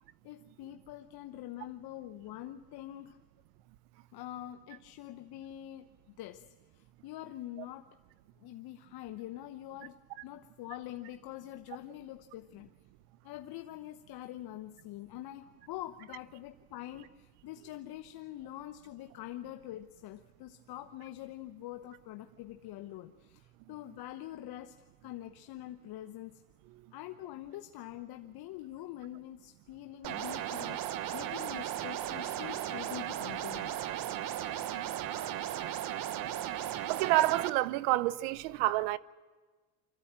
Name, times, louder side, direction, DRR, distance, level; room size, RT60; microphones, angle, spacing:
voice 1, 0.2-3.2 4.1-6.5 6.7-7.9 8.4-12.7 13.2-26.4 26.9-33.8, left 14 dB, 50° left, 0.9 m, -45 dB
sound 1, 30.0-37.5, right 11 dB, 45° right, 1.0 m, -36 dB
voice 2, 35.0-35.3 36.9-39.0, right 17 dB, 75° right, 0.8 m, -29 dB
25.5 x 13.5 x 8.7 m
supercardioid pair, 110°, 48 cm